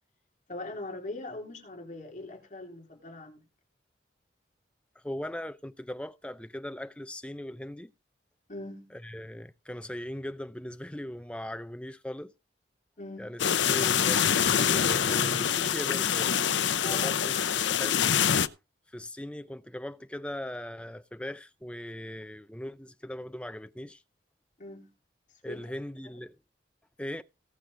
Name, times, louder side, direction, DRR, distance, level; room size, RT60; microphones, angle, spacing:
voice 1, 0.5-3.4 8.5-8.9 13.0-13.3 16.8-17.1 24.6-24.9 25.4-25.7, left 2 dB, 45° left, 3.7 m, -41 dB
voice 2, 5.0-7.9 8.9-12.3 13.2-16.3 16.9-18.1 18.9-24.0 25.4-26.4 27.0-27.2, left 1 dB, 5° left, 0.5 m, -39 dB
sound 1, 13.4-18.5, left 8 dB, 80° left, 0.6 m, -25 dB
18.0 x 6.5 x 3.8 m
head